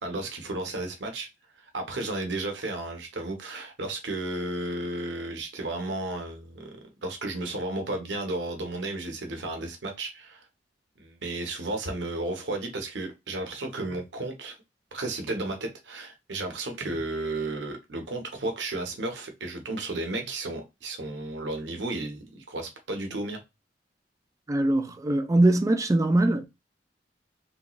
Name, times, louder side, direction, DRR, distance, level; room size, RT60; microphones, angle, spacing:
voice 1, 0.0-1.3 1.6-10.5 11.0-14.6 14.9-23.4, right 2 dB, 90° right, 1.0 m, -33 dB
voice 2, 24.5-26.5, right 1 dB, 20° right, 0.4 m, -22 dB
3.4 x 3.1 x 2.3 m
head